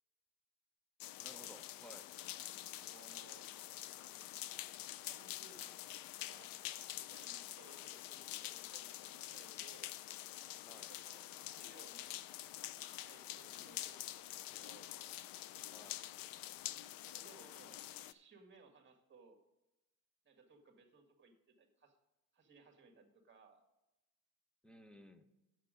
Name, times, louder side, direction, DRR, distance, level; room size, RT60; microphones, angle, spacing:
sound 1, 1.0-18.1, left 14 dB, 80° left, 0.5 m, -47 dB
voice 1, 1.2-2.1 10.6-10.9 15.7-16.0 24.6-25.3, right 1 dB, 5° left, 9 dB, 0.7 m, -58 dB
voice 2, 2.8-3.5 5.0-5.8 6.3-6.6 6.9-9.9 10.7-12.2 13.0-14.9 17.0-19.4 20.2-22.0 22.3-23.6, right 4 dB, 35° right, 4 dB, 1.9 m, -63 dB
9.3 x 7.5 x 5.1 m, 0.96 s
cardioid pair, 115°, 34 cm